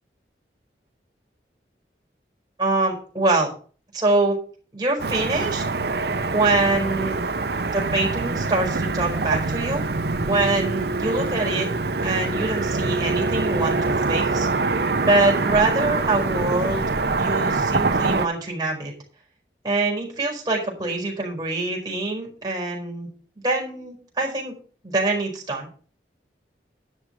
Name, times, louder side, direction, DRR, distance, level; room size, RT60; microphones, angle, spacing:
voice 1, 2.6-3.5 3.9-4.4 4.7-5.6 6.3-7.2 7.7-9.8 10.3-11.7 12.0-14.5 15.0-16.8 17.2-18.9 19.6-23.1 23.4-24.5 24.8-25.7, right 2 dB, 20° right, -1 dB, 4.7 m, -24 dB
Car passing by / Traffic noise roadway noise, 5.0-18.3, right 3 dB, 65° right, 0.8 m, -24 dB
11.0 x 6.4 x 6.4 m, 0.41 s
head